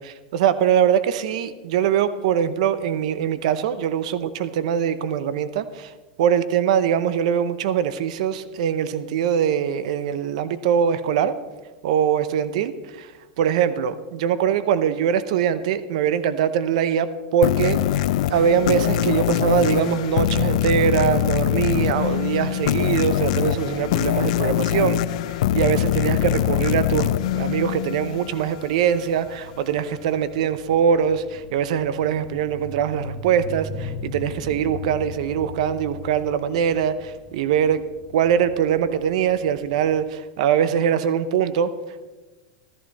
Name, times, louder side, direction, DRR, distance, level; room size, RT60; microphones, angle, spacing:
voice 1, 0.0-11.3 11.8-25.0 25.3-37.8 38.1-42.1, right 8 dB, 70° right, 14 dB, 0.7 m, -22 dB
sound 1, 17.4-28.6, left 12 dB, 75° left, 0.5 m, -23 dB
sound 2, 27.8-40.0, left 3 dB, 35° left, 1.4 m, -40 dB
14.0 x 14.0 x 4.2 m, 1.2 s
supercardioid pair, 145°, 4 cm